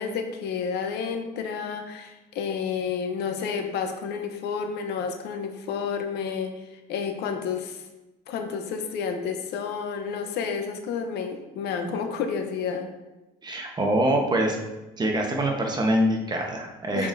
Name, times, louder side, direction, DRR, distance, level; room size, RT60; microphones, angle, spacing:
voice 1, 0.0-6.5 6.9-7.8 8.3-12.9 17.0-17.1, left 6 dB, 80° left, 6 dB, 0.8 m, -30 dB
voice 2, 13.4-14.6 15.0-17.1, right 1 dB, 25° right, 2 dB, 1.0 m, -24 dB
6.9 x 5.2 x 2.6 m, 1.0 s
cardioid pair, 110°, 17 cm